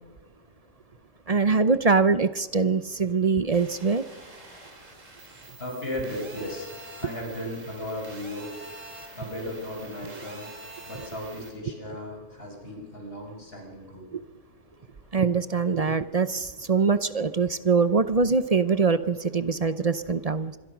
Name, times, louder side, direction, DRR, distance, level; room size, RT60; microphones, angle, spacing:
voice 1, 1.3-4.0 14.1-14.2 15.1-20.6, right 4 dB, 35° right, 12 dB, 0.7 m, -23 dB
sound 1, 3.5-11.5, right 2 dB, 80° right, 3.8 m, -45 dB
voice 2, 5.6-6.7 6.9-8.8 9.1-10.5 10.9-14.1, left 1 dB, 50° left, 1 dB, 6.1 m, -36 dB
26.5 x 21.5 x 6.1 m, 1.4 s
omnidirectional pair, 1.3 m